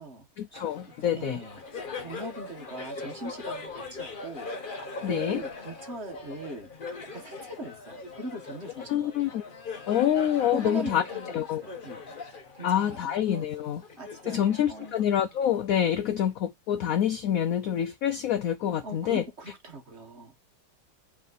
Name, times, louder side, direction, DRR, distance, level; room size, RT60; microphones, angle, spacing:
voice 1, 0.4-1.4 5.0-5.4 8.9-9.4 9.9-11.0 11.3-11.6 12.6-13.8 14.3-19.2, left 10 dB, 85° left, 0.7 m, -26 dB
Laughter, 0.5-15.5, left 3 dB, 35° left, 0.9 m, -41 dB
voice 2, 1.1-1.6 2.0-4.5 5.0-6.7 7.1-9.4 10.5-12.0 12.5-13.5 14.0-15.0 18.8-20.3, right 2 dB, 40° right, 1.3 m, -41 dB
7.6 x 3.6 x 3.9 m
omnidirectional pair, 2.1 m